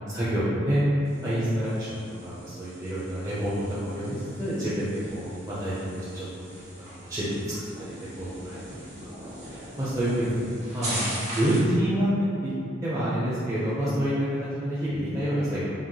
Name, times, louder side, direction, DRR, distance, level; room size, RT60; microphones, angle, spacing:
voice 1, 0.1-3.5 3.8-6.3 6.8-7.4 7.8-9.1 9.5-10.4 10.7-11.1 11.3-12.1 12.4-12.5 12.8-15.8, equal, 15° right, -11 dB, 0.7 m, -28 dB
sound 1, 1.0-11.8, right 1 dB, 35° right, 1.5 m, -40 dB
5.8 x 2.0 x 3.2 m, 2.3 s
head